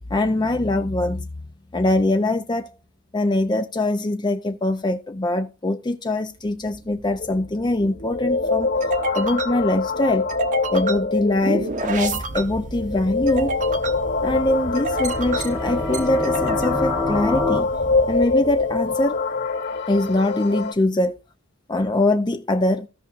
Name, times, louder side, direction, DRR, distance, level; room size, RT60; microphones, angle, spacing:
voice 1, 0.1-1.3 1.7-2.7 3.1-8.7 9.2-10.3 10.7-13.6 14.2-17.7 18.1-19.2 19.9-21.2 21.7-22.9, left 2 dB, 20° left, 0.5 m, -22 dB
sound 1, 6.5-19.2, right 2 dB, 40° right, 1.0 m, -31 dB
sound 2, 7.2-20.7, left 4 dB, 55° left, 2.6 m, -25 dB
sound 3, 15.0-17.6, left 2 dB, 5° left, 1.0 m, -27 dB
16.0 x 5.7 x 2.5 m
head